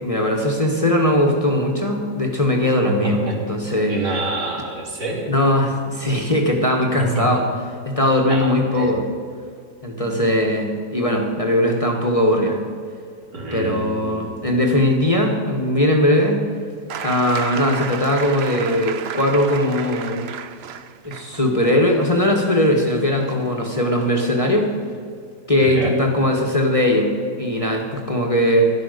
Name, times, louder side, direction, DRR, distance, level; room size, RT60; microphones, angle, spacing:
voice 1, 0.0-3.2 3.5-4.0 5.3-7.5 7.8-9.0 9.8-12.6 13.5-16.4 17.0-20.2 21.0-24.7 25.5-27.1 27.4-28.7, left 1 dB, 20° left, 1 dB, 1.3 m, -19 dB
voice 2, 2.8-3.4 3.9-5.3 7.0-7.3 8.3-8.9 13.3-14.4 25.6-26.0, right 2 dB, 80° right, -1 dB, 3.1 m, -27 dB
sound 1, 16.9-24.4 25.6-25.7, right 8 dB, 60° right, 0.6 m, -34 dB
13.0 x 11.0 x 6.6 m, 2.2 s
omnidirectional pair, 1.8 m